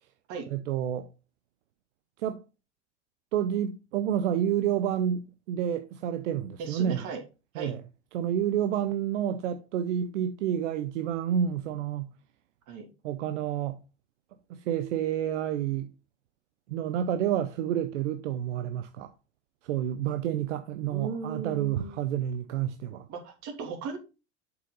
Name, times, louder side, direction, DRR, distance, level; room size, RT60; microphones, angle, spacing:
voice 1, 0.5-1.1 2.2-2.4 3.3-7.1 7.6-7.8 8.1-12.1 13.0-13.8 14.5-15.9 16.7-19.1 19.6-23.1, right 10 dB, 80° right, 0.7 m, -29 dB
voice 2, 6.6-7.2 7.5-7.7 12.7-12.9 20.9-22.0 23.1-24.0, right 5 dB, 55° right, 2.9 m, -37 dB
7.5 x 5.8 x 3.9 m
hypercardioid pair, 95°, 36 cm